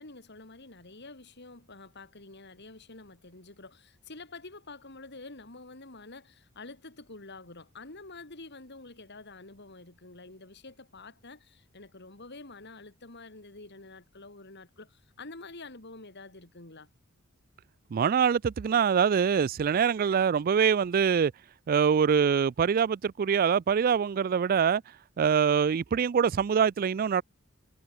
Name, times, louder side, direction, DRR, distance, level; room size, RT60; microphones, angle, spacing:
voice 1, 0.0-16.9, left 3 dB, 50° left, 3.2 m, -48 dB
voice 2, 17.9-21.3 21.7-24.8 25.2-27.2, right 7 dB, 40° right, 0.3 m, -24 dB
head